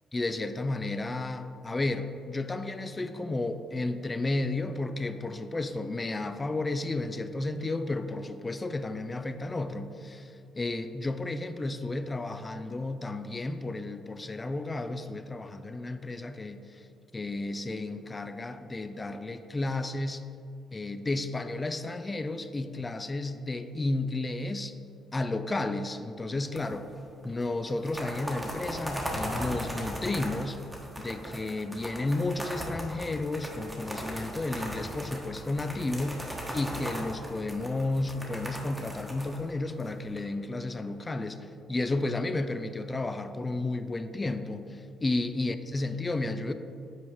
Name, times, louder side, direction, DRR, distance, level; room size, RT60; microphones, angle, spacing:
voice 1, 0.1-16.9 17.1-20.2 20.7-24.7 25.1-26.9 27.2-30.6 31.0-46.5, left 2 dB, 25° left, 10 dB, 0.4 m, -32 dB
sound 1, 26.6-27.0 27.2-27.3 27.7-40.2, equal, 10° right, 1.2 m, -38 dB
7.9 x 4.7 x 3.5 m, 2.6 s
cardioid pair, 90°, 0 cm